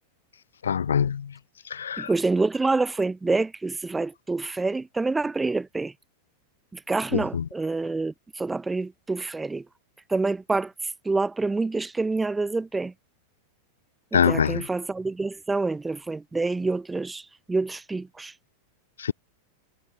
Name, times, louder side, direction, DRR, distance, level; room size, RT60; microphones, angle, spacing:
voice 1, 0.7-1.2 1.8-2.1 14.1-14.6 19.0-19.1, left 7 dB, 70° left, 1.0 m, -22 dB
voice 2, 2.0-5.9 6.7-9.6 10.1-10.7 11.0-12.9 14.1-18.3, right 3 dB, 10° right, 3.2 m, -27 dB
figure-of-eight pair, 90°, 0 cm